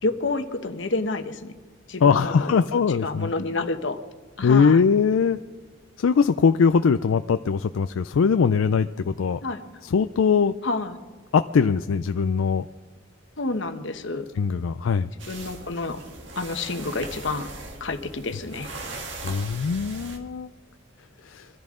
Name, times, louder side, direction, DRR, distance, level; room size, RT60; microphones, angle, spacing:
voice 1, 0.0-1.5 1.9-4.0 4.4-4.8 9.4-9.6 10.6-11.0 13.4-14.3 15.3-16.0 16.4-17.5 17.8-18.7, left 3 dB, 65° left, 8 dB, 1.1 m, -29 dB
voice 2, 2.0-3.3 4.4-5.4 6.0-9.4 9.9-10.5 11.3-12.7 14.4-15.1 19.2-20.5 21.2-21.5, left 5 dB, 80° left, 10 dB, 0.4 m, -21 dB
sound 1, 15.2-20.2, right 3 dB, 60° right, 1.8 m, -39 dB
24.5 x 14.0 x 3.8 m, 1.3 s
head